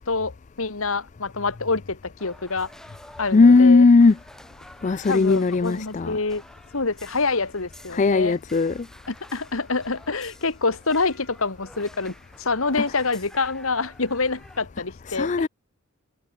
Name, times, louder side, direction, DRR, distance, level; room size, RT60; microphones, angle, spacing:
voice 1, 0.1-2.7 3.2-3.8 5.1-6.4 6.7-8.4 9.1-15.5, left 3 dB, 70° left, 1.8 m, -26 dB
sound 1, 2.2-14.6, equal, ahead, 2.0 m, -49 dB
voice 2, 3.3-4.2 4.8-6.2 7.9-8.7 12.8-12.9 15.1-15.5, left 3 dB, 35° left, 0.4 m, -17 dB
head